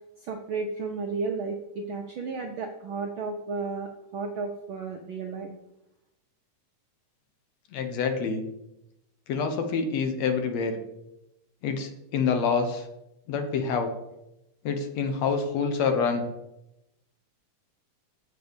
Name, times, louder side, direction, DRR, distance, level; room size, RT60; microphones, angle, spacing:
voice 1, 0.2-5.5, right 4 dB, 70° right, 2 dB, 1.2 m, -33 dB
voice 2, 7.7-8.4 9.3-10.8 11.6-12.8 13.3-13.9 14.6-16.2, left 5 dB, 70° left, 6 dB, 2.2 m, -27 dB
7.5 x 6.6 x 7.0 m, 0.86 s
omnidirectional pair, 3.3 m